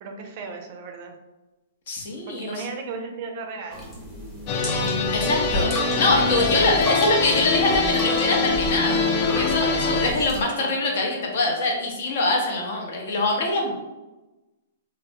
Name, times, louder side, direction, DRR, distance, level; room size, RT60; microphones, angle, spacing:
voice 1, 0.0-1.1 2.3-3.9 6.1-7.4 10.4-11.3 12.9-13.2, right 4 dB, 45° right, 4 dB, 0.4 m, -37 dB
voice 2, 1.9-2.6 5.1-13.8, left 2 dB, 60° left, 1 dB, 0.7 m, -24 dB
sound 1, 3.7-10.4, equal, 10° left, 0.7 m, -33 dB
sound 2, 4.5-10.1, left 3 dB, 35° left, 0.3 m, -24 dB
3.1 x 2.0 x 2.7 m, 1.1 s
hypercardioid pair, 150°, 0 cm